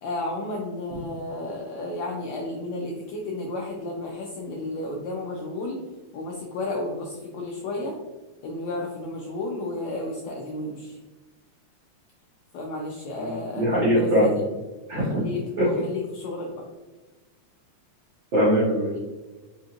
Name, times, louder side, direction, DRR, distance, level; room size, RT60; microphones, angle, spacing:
voice 1, 0.0-5.8 6.1-8.0 8.4-11.0 12.5-14.5 14.9-16.6, left 2 dB, 85° left, -1 dB, 1.6 m, -32 dB
voice 2, 13.2-14.3 14.9-15.2 15.6-15.7 18.3-19.1, equal, 80° right, -8 dB, 1.0 m, -22 dB
5.1 x 2.5 x 2.8 m, 1.2 s
omnidirectional pair, 3.7 m